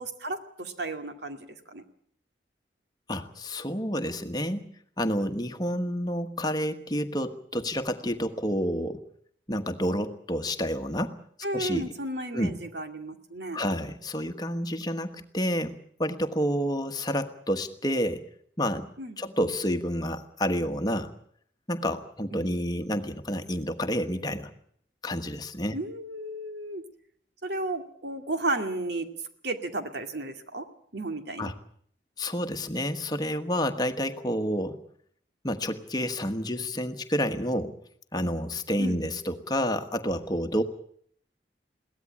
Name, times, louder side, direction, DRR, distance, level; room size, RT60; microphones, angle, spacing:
voice 1, 0.0-1.8 11.4-13.6 19.0-19.5 22.3-22.5 25.7-26.8 27.4-29.1 29.4-30.7 30.9-31.5 38.8-39.0, right 2 dB, 70° right, 6 dB, 2.3 m, -33 dB
voice 2, 3.1-4.7 5.0-9.0 9.5-11.2 11.5-11.9 12.3-12.6 13.5-18.2 18.6-18.9 19.2-21.1 21.7-24.5 25.0-25.7 31.4-31.5 32.2-34.8 35.4-37.8 38.1-40.6, equal, 20° left, 7 dB, 1.3 m, -29 dB
22.5 x 17.0 x 8.7 m, 0.64 s
head